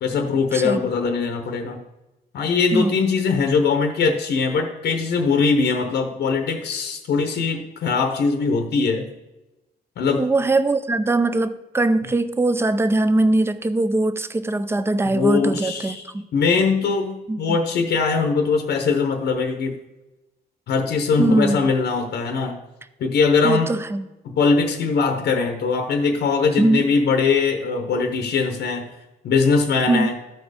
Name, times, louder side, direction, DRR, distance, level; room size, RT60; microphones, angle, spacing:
voice 1, 0.0-1.8 2.3-9.1 10.0-10.3 15.1-16.0 16.3-19.7 20.7-22.6 23.0-23.7 24.2-28.9 29.2-30.2, left 5 dB, 80° left, 6 dB, 0.9 m, -21 dB
voice 2, 0.5-0.8 2.7-3.0 10.2-16.3 17.3-17.6 21.2-21.7 23.4-24.1 26.6-26.8 29.9-30.1, right 2 dB, 15° right, 13 dB, 0.4 m, -21 dB
13.5 x 4.5 x 4.8 m, 1.0 s
cardioid pair, 140°, 17 cm